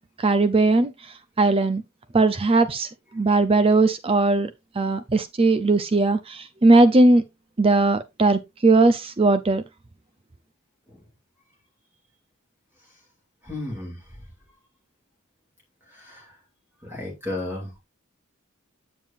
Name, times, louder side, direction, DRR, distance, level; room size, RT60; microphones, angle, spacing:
voice 1, 0.2-0.9 1.4-1.8 2.1-2.9 3.1-4.5 4.8-7.2 7.6-9.6, right 2 dB, 25° right, 0.5 m, -19 dB
voice 2, 13.4-14.0 15.9-16.2 16.8-17.8, left 2 dB, 10° right, 2.8 m, -33 dB
8.7 x 7.4 x 2.5 m
head